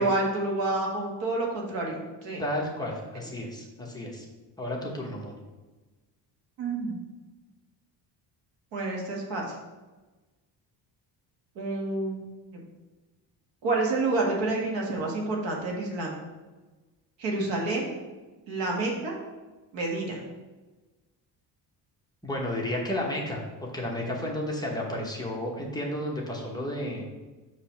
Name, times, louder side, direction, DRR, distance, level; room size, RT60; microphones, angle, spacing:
voice 1, 0.0-2.4 6.6-7.0 8.7-9.4 11.6-12.3 12.5-12.6 13.6-16.2 17.2-18.0 18.5-19.2 19.7-20.2, right 2 dB, 90° right, -1 dB, 1.7 m, -29 dB
voice 2, 2.4-4.2 4.6-5.4 22.2-27.1, left 1 dB, 10° left, -2 dB, 0.9 m, -32 dB
6.7 x 3.2 x 5.7 m, 1.2 s
cardioid pair, 150°, 43 cm